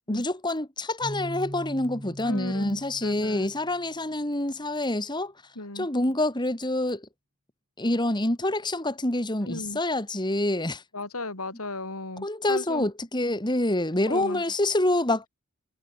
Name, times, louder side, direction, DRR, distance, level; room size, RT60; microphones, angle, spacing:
voice 1, 0.1-5.3 5.7-7.1 7.8-10.8 12.2-15.3, left 1 dB, 20° left, 2.7 m, -27 dB
Keyboard (musical), 1.0-3.9, equal, 20° right, 2.8 m, -40 dB
voice 2, 2.2-3.5 5.6-5.9 9.4-9.8 10.9-12.9 14.1-14.4, left 2 dB, 85° left, 5.6 m, -35 dB
head